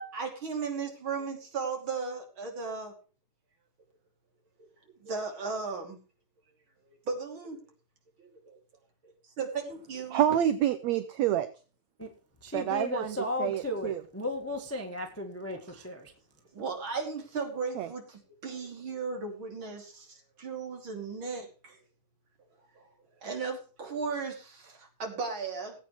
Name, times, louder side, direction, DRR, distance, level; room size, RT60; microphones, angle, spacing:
voice 1, 0.1-2.9 4.6-4.7 5.0-6.0 6.9-7.6 8.2-8.6 9.4-10.2 16.5-21.8 22.7-22.8 23.2-25.7, right 5 dB, 40° right, 3.3 m, -36 dB
voice 2, 10.1-11.5 12.5-13.1 13.4-14.0 17.7-17.9, right 11 dB, 75° right, 1.6 m, -27 dB
voice 3, 12.4-16.1, left 1 dB, 15° left, 0.4 m, -35 dB
19.5 x 8.6 x 3.2 m
omnidirectional pair, 3.9 m